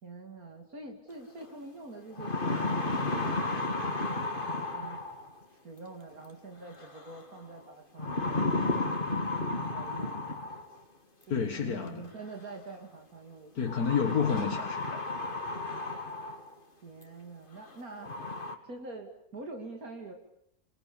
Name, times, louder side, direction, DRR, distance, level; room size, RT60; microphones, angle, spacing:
voice 1, 0.0-5.0 5.5-8.5 9.7-10.2 11.3-13.8 16.8-18.1 18.6-20.1, right 3 dB, 75° right, 3 dB, 3.2 m, -45 dB
sound 1, 1.4-1.5 2.0-5.4 6.8-7.2 8.0-10.8 12.0-12.1 13.7-16.5 17.0-17.1 17.7-17.8 18.0-18.5, left 2 dB, 35° left, 2.7 m, -33 dB
voice 2, 11.3-12.1 13.6-15.1, left 6 dB, 90° left, 4 dB, 2.1 m, -30 dB
27.5 x 26.0 x 7.2 m, 0.77 s
omnidirectional pair, 1.5 m